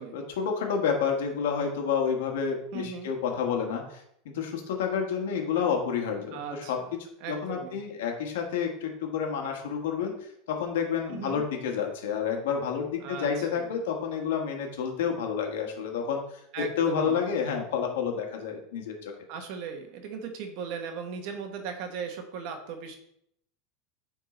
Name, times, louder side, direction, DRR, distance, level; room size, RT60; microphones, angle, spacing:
voice 1, 0.1-6.8 7.3-10.1 10.5-16.4 16.8-19.1, left 7 dB, 85° left, 3 dB, 1.6 m, -29 dB
voice 2, 2.7-3.1 6.3-6.7 7.2-7.8 11.1-11.4 13.0-13.7 16.5-17.2 19.3-23.0, right 6 dB, 50° right, 5 dB, 1.2 m, -37 dB
9.1 x 3.8 x 3.9 m, 0.73 s
supercardioid pair, 170°, 0 cm